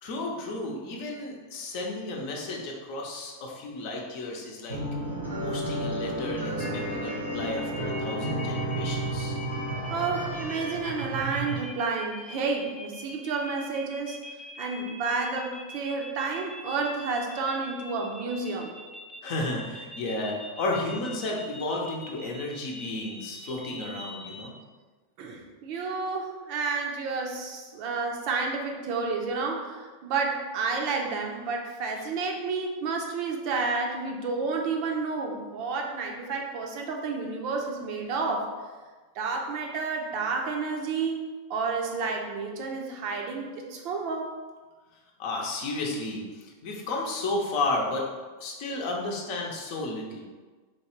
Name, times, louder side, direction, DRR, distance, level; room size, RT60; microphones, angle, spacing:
voice 1, 0.0-4.8 5.4-9.4 19.2-24.5 45.2-48.1 48.4-50.2, left 2 dB, 45° left, -1 dB, 0.8 m, -33 dB
sound 1, 4.7-11.6, right 1 dB, 80° right, 1.0 m, -32 dB
sound 2, 6.6-24.5, left 1 dB, 5° left, 0.5 m, -43 dB
voice 2, 9.9-14.2 14.6-18.7 25.2-38.5 39.1-44.3, right 4 dB, 45° right, 1 dB, 0.6 m, -30 dB
4.5 x 3.1 x 3.1 m, 1.4 s
figure-of-eight pair, 90°, 0 cm